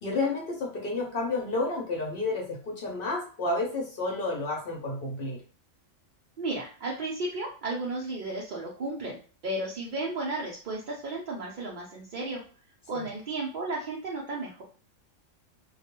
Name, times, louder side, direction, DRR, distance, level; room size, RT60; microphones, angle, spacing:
voice 1, 0.0-5.4 12.9-13.0, left 2 dB, 55° left, 0 dB, 0.7 m, -31 dB
voice 2, 6.4-12.4 12.9-14.6, right 2 dB, 60° right, -3 dB, 0.5 m, -34 dB
2.3 x 2.0 x 2.9 m, 0.39 s
omnidirectional pair, 1.3 m